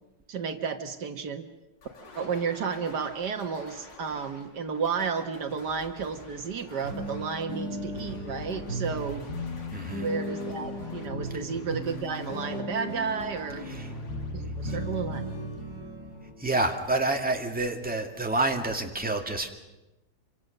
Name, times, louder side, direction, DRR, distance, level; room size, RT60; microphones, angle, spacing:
voice 1, 0.3-1.5 2.2-9.3 9.9-13.8 14.3-15.3, right 5 dB, 65° right, 7 dB, 1.8 m, -32 dB
sound 1, 1.8-15.7, left 3 dB, 85° left, 3.4 m, -49 dB
sound 2, 6.8-16.3, equal, 45° left, 7.9 m, -36 dB
voice 2, 9.7-10.1 11.3-11.5 13.6-13.9 14.7-14.8 16.4-19.5, right 2 dB, 5° right, 3 dB, 2.2 m, -28 dB
27.0 x 25.0 x 6.6 m, 0.99 s
omnidirectional pair, 1.9 m